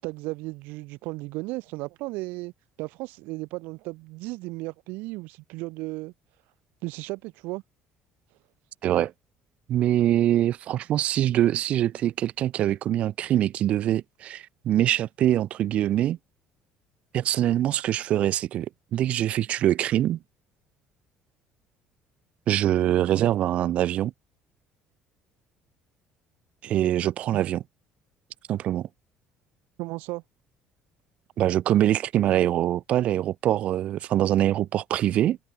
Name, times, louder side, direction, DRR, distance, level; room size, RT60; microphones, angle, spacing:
voice 1, 0.0-2.5 2.8-6.1 6.8-7.6 27.3-27.4 29.8-30.2, right 23 dB, 80° right, 7.4 m, -35 dB
voice 2, 9.7-16.2 17.1-18.7 18.9-20.2 22.5-24.1 26.6-27.6 28.5-28.9 31.4-35.4, right 12 dB, 45° right, 0.7 m, -24 dB
cardioid pair, 170°, 3 cm